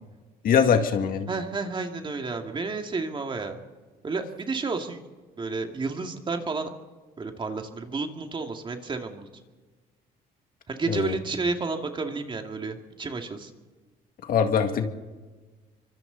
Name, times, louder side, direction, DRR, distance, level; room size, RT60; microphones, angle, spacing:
voice 1, 0.4-1.3 10.9-11.2 14.3-14.9, left 7 dB, 60° left, 6 dB, 2.1 m, -22 dB
voice 2, 1.3-3.6 4.0-5.0 5.4-6.7 7.2-9.3 10.7-13.5, right 3 dB, 30° right, 4 dB, 2.3 m, -31 dB
28.0 x 24.5 x 4.0 m, 1.3 s
cardioid pair, 110°, 17 cm